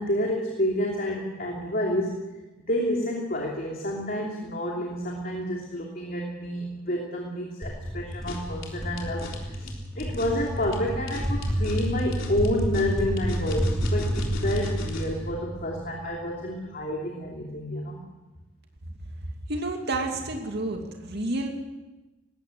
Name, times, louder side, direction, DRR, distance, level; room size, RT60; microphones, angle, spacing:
voice 1, 0.0-2.2 2.6-18.0, left 1 dB, 50° left, -1 dB, 2.9 m, -29 dB
sound 1, 7.6-16.3, equal, 5° left, 4.2 m, -30 dB
sound 2, 8.1-15.2, left 2 dB, 85° left, 3.9 m, -39 dB
voice 2, 19.5-21.5, right 2 dB, 55° right, 3 dB, 2.6 m, -30 dB
20.0 x 16.5 x 7.9 m, 1.1 s
head